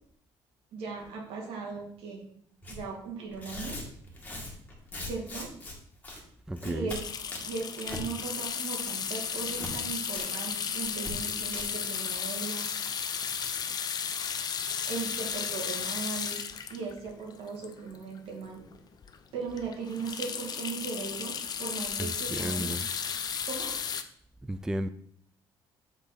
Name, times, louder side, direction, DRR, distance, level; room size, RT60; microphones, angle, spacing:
voice 1, 0.7-2.3 2.7-3.8 5.0-5.5 6.6-7.0 7.4-12.7 13.7-13.9 14.9-16.4 16.7-18.6 19.3-22.7 23.4-23.7, right 5 dB, 80° right, 2.2 m, -38 dB
Tearing, 2.6-2.8 3.3-5.7 6.0-6.2 6.5-7.0 7.3-8.0 8.3-8.7 9.0-9.7 10.1-10.3 10.5-10.6 11.0-11.1 11.4-11.6, left 2 dB, 15° left, 2.0 m, -40 dB
voice 2, 6.5-6.9 22.0-22.9 24.5-24.9, right 1 dB, 5° right, 0.3 m, -33 dB
sound 1, 6.9-18.2 18.7-18.8 19.0-19.2 19.5-24.0, left 7 dB, 45° left, 0.6 m, -34 dB
6.8 x 4.1 x 4.1 m
cardioid pair, 100°, 10 cm